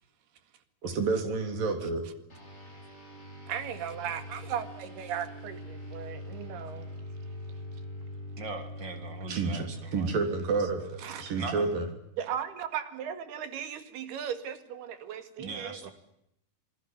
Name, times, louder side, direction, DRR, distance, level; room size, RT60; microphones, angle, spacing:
voice 1, 0.8-2.1 9.3-9.7 9.9-11.9, right 4 dB, 60° right, 7 dB, 5.1 m, -29 dB
sound 1, 2.3-12.0, left 1 dB, 15° left, 6.5 m, -43 dB
voice 2, 3.5-6.9 11.0-11.3 12.2-15.9, right 9 dB, 85° right, 10 dB, 4.0 m, -37 dB
voice 3, 8.4-10.1 11.4-11.7 15.4-15.9, right 4 dB, 30° right, 8 dB, 3.2 m, -40 dB
27.5 x 20.0 x 9.4 m, 0.76 s
omnidirectional pair, 4.5 m